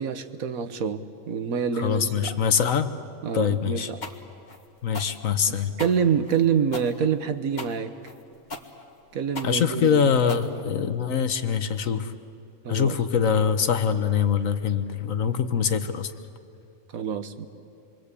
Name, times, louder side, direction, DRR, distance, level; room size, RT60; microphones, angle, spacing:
voice 1, 0.0-2.4 3.2-4.0 5.5-7.9 9.1-10.1 12.6-13.0 16.9-17.5, right 7 dB, 85° right, 10 dB, 1.5 m, -27 dB
voice 2, 1.7-2.9 3.3-3.9 4.8-5.7 9.4-12.1 12.7-16.1, left 7 dB, 70° left, 10 dB, 1.5 m, -24 dB
sound 1, 4.0-11.1, left 3 dB, 35° left, 1.5 m, -39 dB
27.0 x 22.5 x 8.4 m, 2.6 s
omnidirectional pair, 1.4 m